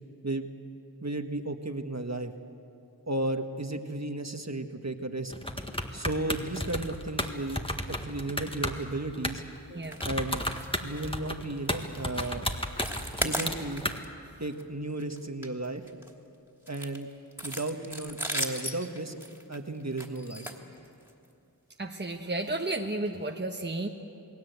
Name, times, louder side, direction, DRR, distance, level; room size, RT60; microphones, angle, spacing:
voice 1, 1.0-2.3 3.0-5.3 5.9-7.6 7.9-9.4 10.0-10.4 10.8-12.5 13.2-13.8 14.4-15.8 16.7-17.1 17.4-19.1 19.5-20.5, right 2 dB, 40° right, 6 dB, 1.5 m, -34 dB
sound 1, 5.3-9.6 9.9-14.0, left 1 dB, 15° left, 1.7 m, -33 dB
sound 2, 9.8-10.1 10.4-10.7 11.0-11.1 11.6-11.8 12.1-12.4 12.6-14.1 14.4-14.6 15.0-16.1 16.7-21.3 22.0-22.2 22.5-22.6 23.1-23.2, equal, 5° right, 2.9 m, -36 dB
voice 2, 21.8-23.9, right 2 dB, 25° right, 2 dB, 1.3 m, -33 dB
28.5 x 19.5 x 8.2 m, 2.7 s
wide cardioid pair, 45°, 40 cm